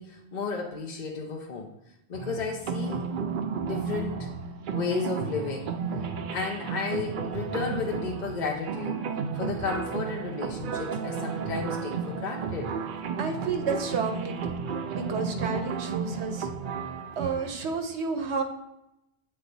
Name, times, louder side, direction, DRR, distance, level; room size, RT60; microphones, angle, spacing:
voice 1, 0.0-1.7 2.1-3.1 3.5-4.3 4.7-5.7 6.3-9.1 9.3-12.8, left 4 dB, 50° left, 1 dB, 0.7 m, -33 dB
sound 1, 2.1-17.5, right 5 dB, 60° right, 0.6 m, -33 dB
voice 2, 13.2-14.5 14.9-16.5 17.2-18.4, right 5 dB, 85° right, 6 dB, 1.1 m, -31 dB
7.7 x 3.4 x 4.0 m, 0.85 s
omnidirectional pair, 1.1 m